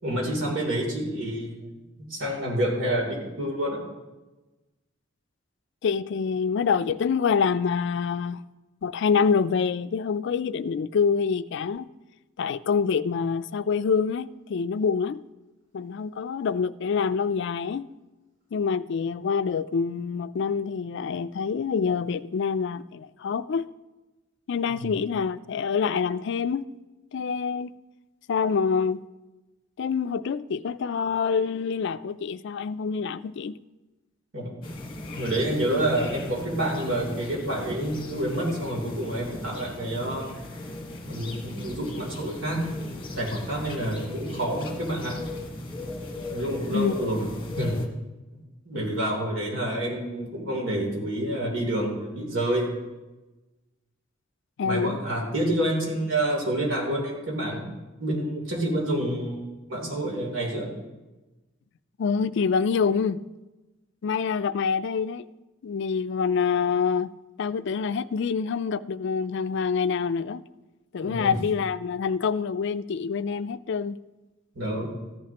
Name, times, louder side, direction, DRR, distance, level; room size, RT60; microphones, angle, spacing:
voice 1, 0.0-1.7 2.0-3.8 24.7-24.9 34.3-34.5 35.1-40.3 41.1-42.8 43.2-45.2 46.3-47.3 47.6-47.7 48.6-52.7 54.6-57.7 58.0-59.4 59.7-60.7 71.0-71.4 74.5-74.9, right 1 dB, 75° right, 3.1 m, -28 dB
voice 2, 5.8-8.4 8.8-11.9 12.4-15.2 15.7-17.9 18.5-23.7 24.5-26.6 27.1-27.7 28.3-29.0 29.8-33.6 41.3-41.4 46.7-47.2 54.6-55.0 62.0-63.2 64.0-65.2 65.6-67.1 67.4-70.4 70.9-74.0, left 6 dB, 65° left, 0.4 m, -26 dB
sound 1, 34.6-47.9, left 2 dB, 25° left, 1.4 m, -37 dB
14.5 x 10.5 x 2.9 m
head